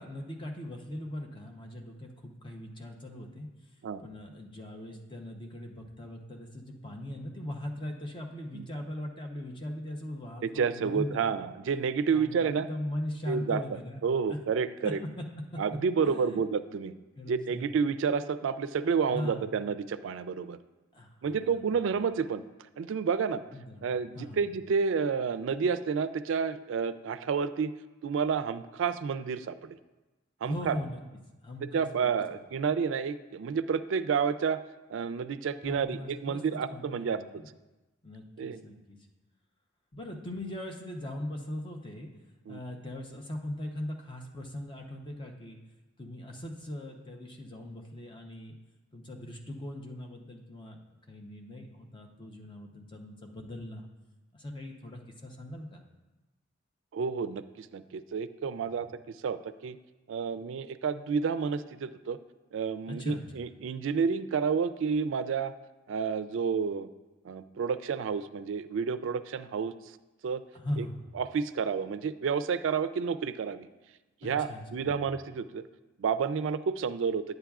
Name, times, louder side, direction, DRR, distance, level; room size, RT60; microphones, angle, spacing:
voice 1, 0.0-3.5 4.0-11.4 12.1-14.0 14.3-14.4 14.8-15.2 15.5-15.6 16.0-16.4 17.2-17.7 19.1-19.5 20.9-21.9 23.5-24.4 30.4-31.0 31.4-32.4 35.6-37.5 38.0-39.0 39.9-42.1 42.5-45.6 46.0-48.5 48.9-50.8 51.1-53.9 54.3-55.8 58.8-58.9 62.9-63.5 70.5-71.1 74.2-75.0, left 1 dB, 25° left, 2 dB, 0.7 m, -40 dB
voice 2, 10.4-12.7 13.3-15.0 15.6-17.0 17.3-20.6 21.2-22.4 22.8-23.4 23.8-27.7 28.0-29.8 30.4-30.8 31.6-34.6 34.9-37.4 38.4-38.6 42.5-42.6 56.9-59.8 60.1-62.2 62.5-65.5 65.9-66.9 67.2-69.7 70.2-70.4 70.8-70.9 71.1-73.7 74.2-75.6 76.0-77.2, right 6 dB, 75° right, 13 dB, 0.3 m, -30 dB
9.9 x 7.9 x 2.4 m, 1.1 s
head